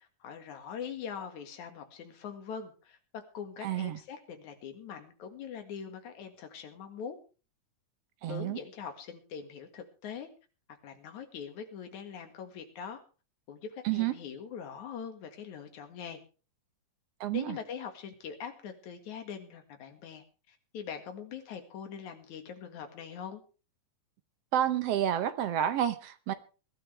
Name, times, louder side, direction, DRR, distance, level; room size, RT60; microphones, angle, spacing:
voice 1, 0.2-7.2 8.2-10.3 10.8-13.0 13.5-16.2 17.3-23.4, left 7 dB, 65° left, 3.2 m, -42 dB
voice 2, 3.6-4.0 8.2-8.6 13.8-14.1 17.2-17.6 24.5-26.3, right 11 dB, 65° right, 1.6 m, -29 dB
21.5 x 12.5 x 3.4 m
omnidirectional pair, 3.7 m